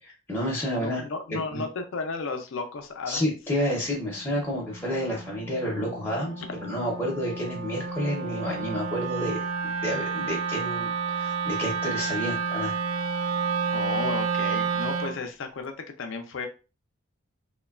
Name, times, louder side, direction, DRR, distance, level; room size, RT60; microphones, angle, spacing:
voice 1, 0.0-1.0 1.3-1.6 3.1-12.8, equal, 10° left, -4 dB, 0.6 m, -30 dB
voice 2, 0.7-3.3 13.7-16.5, left 4 dB, 60° left, 6 dB, 0.4 m, -33 dB
Wind instrument woodwind instrument, 3.6-15.2, right 5 dB, 80° right, 0.3 m, -31 dB
3.0 x 2.2 x 2.3 m, 0.33 s
head